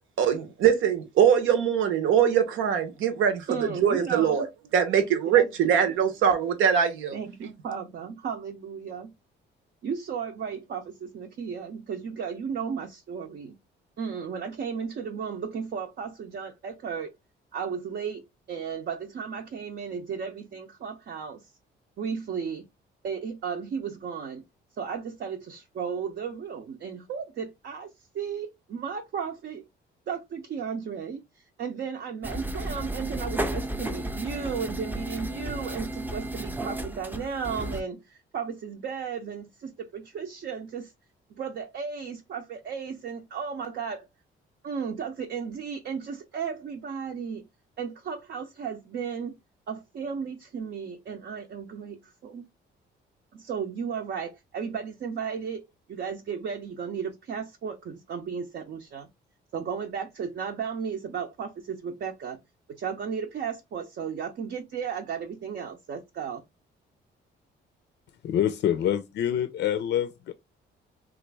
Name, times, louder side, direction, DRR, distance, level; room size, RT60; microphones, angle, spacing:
voice 1, 0.2-3.4 3.8-4.5 4.7-7.2, right 8 dB, 85° right, 0.9 m, -22 dB
voice 2, 3.5-4.5 5.3-5.9 7.1-9.1 9.8-13.6 14.0-17.1 17.5-21.5 22.0-22.7 23.0-24.4 24.8-27.9 28.1-29.6 30.1-31.2 31.6-40.9 41.3-44.1 44.6-47.5 47.8-49.3 49.7-52.4 53.3-59.1 59.5-62.4 62.8-66.4, right 6 dB, 60° right, 0.6 m, -34 dB
sound 1, 32.2-37.8, right 1 dB, 10° right, 0.5 m, -33 dB
voice 3, 68.2-70.3, left 10 dB, 65° left, 0.4 m, -26 dB
3.1 x 2.5 x 3.2 m
cardioid pair, 90°, 20 cm